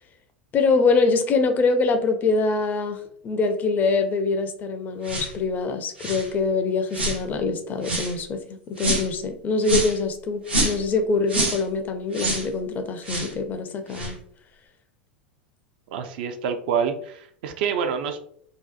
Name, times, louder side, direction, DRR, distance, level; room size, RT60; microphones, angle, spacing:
voice 1, 0.5-14.2, left 4 dB, 30° left, 6 dB, 0.4 m, -24 dB
sound 1, 5.0-5.3 6.0-6.3 6.9-7.2 7.8-8.1 8.8-9.1 9.6-10.0 10.5-10.9 11.3-11.6 12.1-12.5 13.0-13.3 13.9-14.1, right 1 dB, 90° right, 0.7 m, -26 dB
voice 2, 15.9-18.2, right 7 dB, 60° right, 7 dB, 0.3 m, -27 dB
2.7 x 2.1 x 2.3 m, 0.63 s
hypercardioid pair, 85°, 6 cm